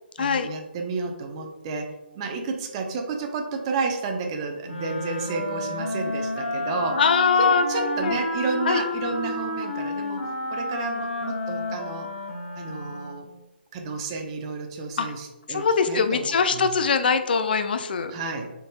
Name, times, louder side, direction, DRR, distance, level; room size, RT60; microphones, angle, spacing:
voice 1, 0.2-7.0 7.4-12.1 12.6-13.3 13.7-16.7 18.1-18.5, right 4 dB, 30° right, 3 dB, 0.6 m, -31 dB
Wind instrument woodwind instrument, 4.6-13.3, left 1 dB, 80° left, 1.2 m, -30 dB
voice 2, 7.0-8.2 8.7-8.8 15.0-15.1 15.5-18.1, left 5 dB, 60° left, 9 dB, 0.4 m, -22 dB
5.0 x 3.9 x 2.4 m, 1.0 s
figure-of-eight pair, 140°, 6 cm